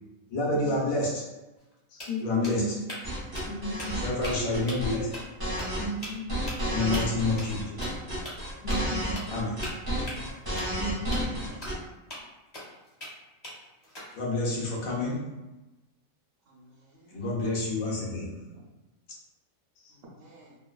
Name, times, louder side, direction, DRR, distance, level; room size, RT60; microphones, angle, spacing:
voice 1, 0.3-1.2 2.2-2.7 3.9-5.1 6.7-7.8 9.3-9.6 14.1-15.3 17.1-18.3, left 2 dB, 80° left, -4 dB, 1.2 m, -28 dB
sound 1, 1.6-1.7 2.0-3.1 3.3-3.5 3.8-4.3 4.7-4.9 5.1-5.2 5.6-5.7 6.0-6.1 6.5-6.6 6.9-7.0 7.4-7.5 7.8-7.9 8.2-8.3 8.7-8.8 9.1-9.3 9.6-10.8 11.1-11.2 11.6-11.7 12.1-12.2 12.5-13.1 13.4-14.2, left 1 dB, 35° left, 0.8 m, -39 dB
voice 2, 1.9-2.7 3.5-4.1 5.8-6.4 8.6-9.3 10.8-11.4, left 1 dB, 65° left, -3 dB, 0.6 m, -34 dB
sound 2, 3.0-11.8, equal, 30° right, 0.4 m, -32 dB
voice 3, 11.0-11.6 16.4-17.2 18.5-18.6 19.9-20.6, equal, 70° right, -6 dB, 1.0 m, -54 dB
2.9 x 2.3 x 2.2 m, 1.1 s
omnidirectional pair, 1.4 m